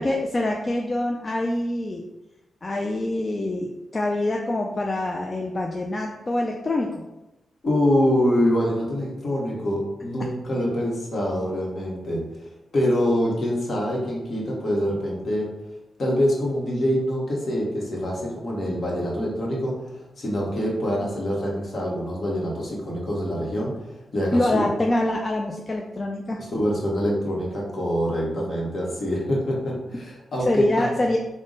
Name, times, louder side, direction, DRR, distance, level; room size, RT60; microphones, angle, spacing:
voice 1, 0.0-2.0 2.6-7.1 24.3-26.4 30.5-31.2, left 1 dB, 35° left, 1 dB, 0.3 m, -25 dB
voice 2, 7.6-15.5 16.0-23.7 24.1-24.7 26.4-30.9, equal, 55° left, -3 dB, 1.2 m, -25 dB
3.5 x 2.1 x 3.8 m, 1.0 s
cardioid pair, 65°, 0 cm